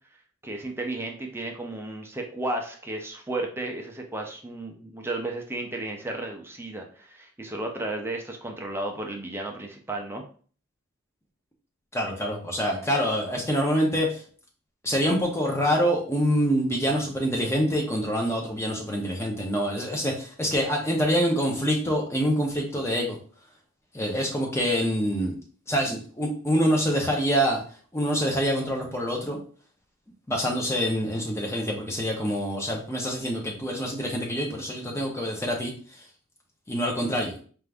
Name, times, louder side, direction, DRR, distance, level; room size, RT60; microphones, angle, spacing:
voice 1, 0.4-10.2, right 2 dB, 10° right, 2 dB, 0.5 m, -33 dB
voice 2, 11.9-14.2 14.8-23.2 23.9-25.4 25.7-27.6 27.9-29.4 30.3-36.1 36.7-37.4, equal, 15° left, 0 dB, 0.8 m, -26 dB
4.5 x 2.5 x 3.5 m, 0.43 s
head